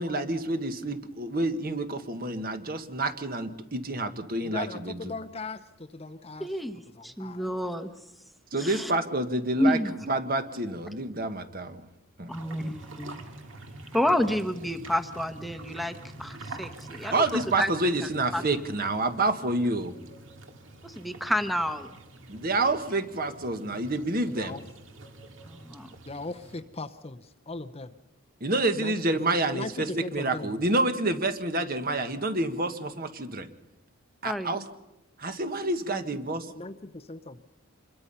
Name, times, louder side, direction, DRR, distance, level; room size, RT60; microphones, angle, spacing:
voice 1, 0.0-5.1 8.5-9.8 10.1-11.8 12.2-12.4 17.1-19.9 22.3-24.6 28.4-33.5 34.2-34.6 35.2-36.4, right 2 dB, 40° right, 8 dB, 1.4 m, -28 dB
voice 2, 4.4-6.5 6.9-7.5 24.3-24.6 26.1-27.9 28.7-28.9 29.3-30.5 35.9-36.0 36.6-37.4, left 3 dB, 25° left, 9 dB, 0.7 m, -39 dB
voice 3, 6.4-7.9 8.6-8.9 9.6-9.9 12.3-13.2 13.9-15.9 16.2-17.9 18.3-18.4 20.8-21.9 25.5-25.9 34.2-34.6, left 1 dB, ahead, 8 dB, 1.0 m, -29 dB
sound 1, 12.3-26.6, right 2 dB, 60° right, 2.1 m, -46 dB
26.5 x 22.0 x 5.6 m, 0.93 s
head